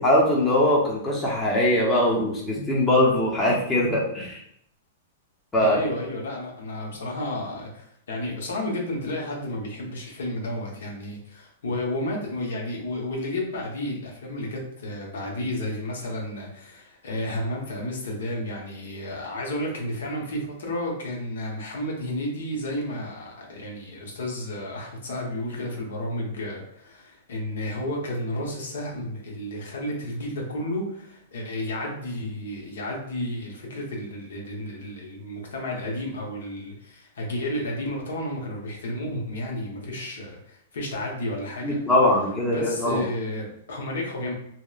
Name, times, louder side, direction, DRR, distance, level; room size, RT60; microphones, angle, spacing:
voice 1, 0.0-4.4 5.5-5.8 41.6-43.0, left 1 dB, 15° left, -3 dB, 0.6 m, -21 dB
voice 2, 5.6-41.8 42.4-44.3, left 1 dB, 85° left, -1 dB, 0.8 m, -32 dB
2.8 x 2.0 x 2.3 m, 0.71 s
hypercardioid pair, 150°, 0 cm